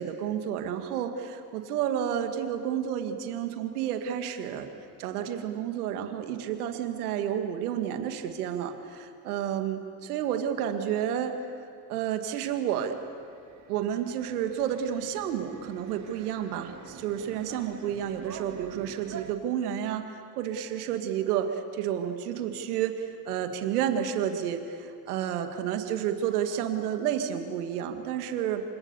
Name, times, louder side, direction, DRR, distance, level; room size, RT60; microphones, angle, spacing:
voice 1, 0.0-4.7 5.0-11.3 11.9-12.9 13.7-28.6, right 9 dB, 90° right, 6 dB, 2.1 m, -30 dB
sound 1, 12.1-19.3, right 6 dB, 40° right, 3.0 m, -47 dB
28.5 x 26.0 x 7.0 m, 2.4 s
hypercardioid pair, 65°, 44 cm